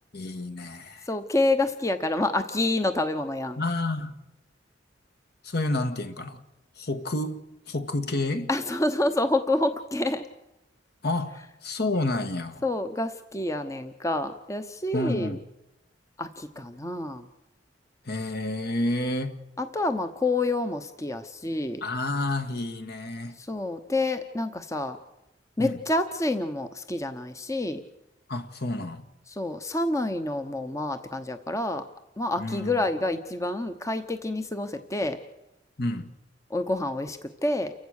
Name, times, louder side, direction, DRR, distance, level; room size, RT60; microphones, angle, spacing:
voice 1, 0.1-1.1 3.6-4.1 5.4-6.4 6.8-8.5 11.0-12.6 14.9-15.4 18.0-19.4 21.8-23.4 25.6-25.8 28.3-29.0 32.4-32.7 35.8-36.1, left 2 dB, 60° left, 1.6 m, -29 dB
voice 2, 1.1-3.6 8.5-10.3 12.6-15.4 16.2-17.3 19.6-21.8 23.4-25.0 25.6-27.8 29.3-31.9 32.2-35.2 36.5-37.7, left 2 dB, 15° left, 0.9 m, -28 dB
29.0 x 15.5 x 6.5 m
head